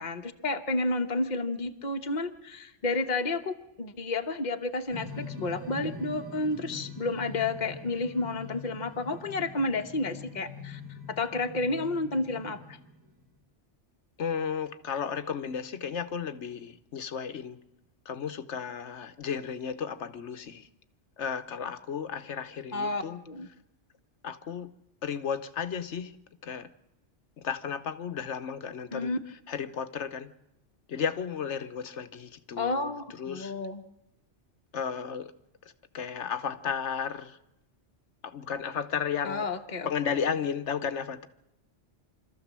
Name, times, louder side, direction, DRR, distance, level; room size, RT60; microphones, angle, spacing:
voice 1, 0.0-10.8 11.1-12.8 22.7-23.5 28.9-29.2 32.6-33.8 39.2-39.9, left 2 dB, 40° left, 6 dB, 1.2 m, -31 dB
sound 1, 4.9-13.3, left 2 dB, 15° right, 2.3 m, -43 dB
voice 2, 14.2-17.6 18.1-20.7 21.2-23.2 24.2-24.7 25.0-26.1 26.4-26.7 27.4-29.1 29.5-30.3 30.9-32.9 33.2-33.5 34.7-35.3 35.9-37.4 38.2-39.5 39.8-41.3, left 7 dB, 70° left, 11 dB, 1.3 m, -33 dB
25.5 x 14.0 x 7.5 m, 0.92 s
omnidirectional pair, 1.2 m